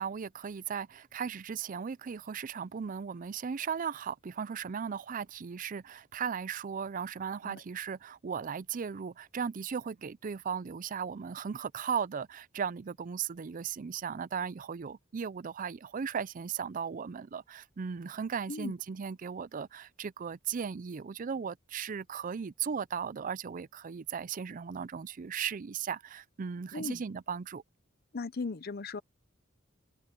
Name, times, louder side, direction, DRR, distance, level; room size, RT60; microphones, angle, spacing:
voice 1, 0.0-27.6, right 7 dB, 40° right, 0.4 m, -37 dB
voice 2, 28.1-29.0, left 4 dB, 50° left, 0.7 m, -37 dB
open air
head